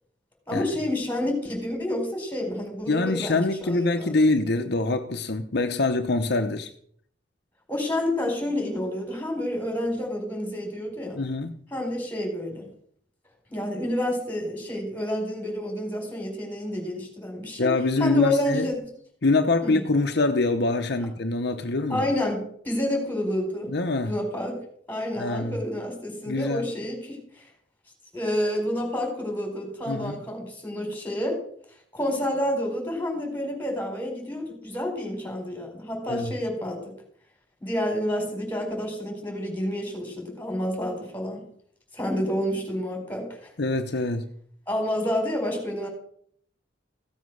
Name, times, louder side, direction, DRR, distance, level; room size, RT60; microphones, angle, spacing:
voice 1, 0.5-4.2 7.7-11.2 11.7-12.7 13.5-17.7 18.0-18.9 19.6-19.8 21.9-23.7 24.0-24.6 24.9-27.4 28.1-31.4 31.9-36.9 37.6-41.4 41.9-43.5 44.7-45.9, left 1 dB, 10° left, 4.6 m, -29 dB
voice 2, 2.9-6.7 11.2-11.5 17.6-18.7 19.2-22.1 23.7-24.1 25.2-25.6 26.3-26.7 29.9-30.2 36.1-36.3 43.6-44.2, left 2 dB, 65° left, 0.9 m, -24 dB
15.5 x 7.3 x 6.4 m
head